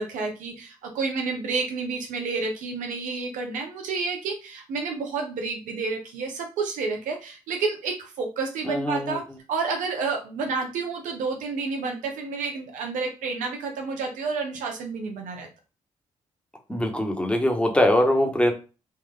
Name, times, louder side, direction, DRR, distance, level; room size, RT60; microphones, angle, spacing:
voice 1, 0.0-9.2 9.5-15.5, right 4 dB, 90° right, 2 dB, 0.9 m, -30 dB
voice 2, 8.7-9.2 16.7-18.5, left 1 dB, 10° left, 3 dB, 1.0 m, -22 dB
3.3 x 2.5 x 3.8 m, 0.32 s
cardioid pair, 75°, 13 cm